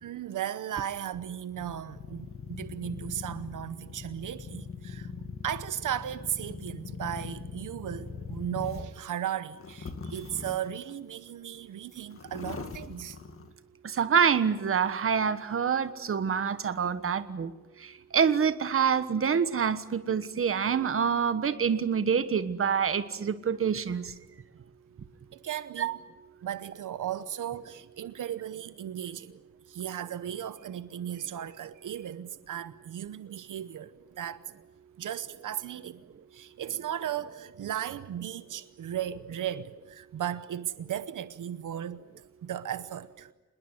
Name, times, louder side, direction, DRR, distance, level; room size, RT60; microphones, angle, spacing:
voice 1, 0.0-5.1 5.4-13.2 25.3-25.9 26.4-29.3 29.7-33.9 34.2-34.4 35.0-36.0 36.3-42.0 42.4-43.3, right 10 dB, 85° right, 0.9 m, -36 dB
sound 1, 1.6-9.0 9.5-10.9 11.5-11.6 11.9-13.5, left 5 dB, 45° left, 2.2 m, -41 dB
voice 2, 13.8-17.5 18.1-24.1 25.8-26.0, right 7 dB, 45° right, 1.4 m, -26 dB
26.5 x 20.5 x 9.5 m
wide cardioid pair, 160°, 30 cm